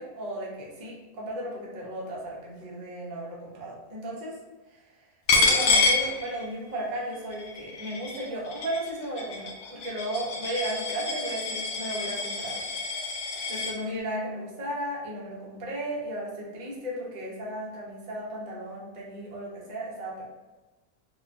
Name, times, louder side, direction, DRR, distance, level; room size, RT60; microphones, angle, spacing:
voice 1, 0.0-4.4 4.7-4.8 5.3-12.6 13.5-20.3, right 1 dB, 65° right, -4 dB, 0.4 m, -35 dB
Coin (dropping), 5.3-6.8 7.1-13.7, left 3 dB, 70° left, 0.7 m, -27 dB
2.9 x 2.2 x 2.4 m, 1.2 s
omnidirectional pair, 1.6 m